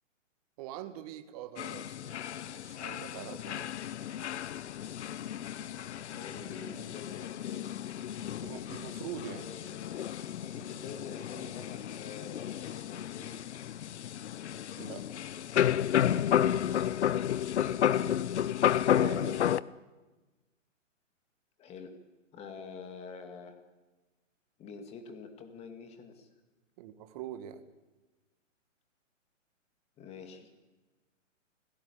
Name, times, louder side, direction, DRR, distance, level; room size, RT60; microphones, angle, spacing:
voice 1, 0.6-3.7 8.4-9.5 14.8-15.1 18.9-19.6 26.8-27.6, right 11 dB, 30° right, 9 dB, 1.5 m, -44 dB
sound 1, 1.6-19.6, left 10 dB, 60° left, 0.8 m, -32 dB
voice 2, 6.1-7.8 9.3-10.2 10.5-13.4 17.5-18.1 21.6-21.9 22.3-23.6 24.6-26.3 30.0-30.5, left 5 dB, 15° left, 6 dB, 2.2 m, -46 dB
24.5 x 17.5 x 8.5 m, 1.2 s
hypercardioid pair, 150°, 38 cm